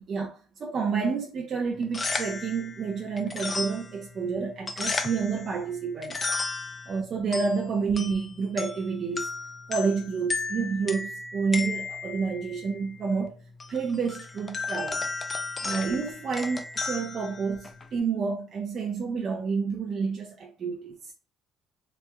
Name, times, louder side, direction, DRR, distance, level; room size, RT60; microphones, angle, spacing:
voice 1, 0.1-6.3 6.9-9.3 9.7-13.3 13.7-15.1 15.6-21.1, right 5 dB, 45° right, 0.5 m, -29 dB
sound 1, 1.7-18.0, left 4 dB, 25° left, 0.4 m, -35 dB
3.0 x 2.1 x 3.4 m
cardioid pair, 115°, 0 cm